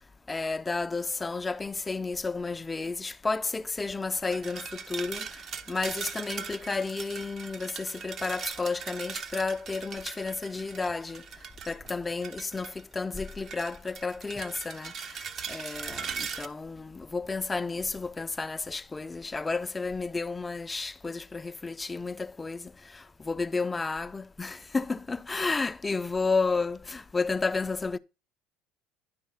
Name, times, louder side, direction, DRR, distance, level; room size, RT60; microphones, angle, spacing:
voice 1, 0.3-5.3 5.7-11.2 11.7-14.9 15.5-22.7 23.2-28.0, left 4 dB, 20° left, 0.5 m, -32 dB
sound 1, 4.3-12.8 13.2-16.5, right 6 dB, 45° right, 1.0 m, -40 dB
11.0 x 5.2 x 5.6 m
hypercardioid pair, 85°, 0 cm